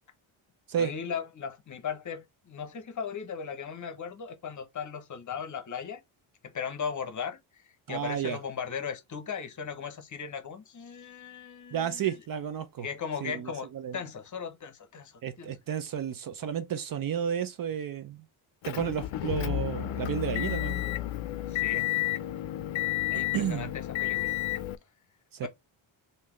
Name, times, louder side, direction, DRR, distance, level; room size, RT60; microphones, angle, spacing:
voice 1, 0.8-6.0 6.4-7.6 7.9-12.2 12.8-13.7 13.9-15.6 21.5-21.9 23.1-24.3 25.4-25.5, left 6 dB, 40° left, 0.8 m, -37 dB
voice 2, 7.9-8.4 11.7-12.9 13.2-14.0 15.2-18.2 18.6-20.8 23.3-23.7 25.3-25.5, right 9 dB, 45° right, 0.5 m, -32 dB
Motor vehicle (road) / Engine, 18.6-24.8, left 16 dB, 70° left, 0.5 m, -31 dB
3.5 x 2.7 x 3.0 m
cardioid pair, 115°, 48 cm